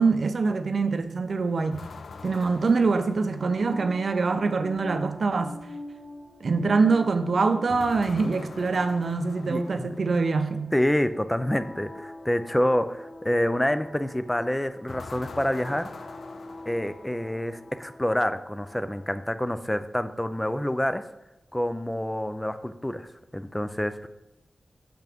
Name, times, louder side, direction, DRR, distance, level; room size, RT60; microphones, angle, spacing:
voice 1, 0.0-1.8 2.2-5.5 6.4-10.7, right 4 dB, 65° right, 0.6 m, -24 dB
sound 1, 1.7-4.1 7.7-10.2 14.9-17.5, left 4 dB, 80° left, 0.4 m, -44 dB
sound 2, 3.2-19.1, left 1 dB, 55° left, 1.4 m, -46 dB
voice 2, 9.5-9.9 10.7-15.9 16.7-21.0 21.5-23.1 23.3-24.1, left 1 dB, 10° left, 0.4 m, -27 dB
6.8 x 5.9 x 3.5 m
wide cardioid pair, 125°, 0 cm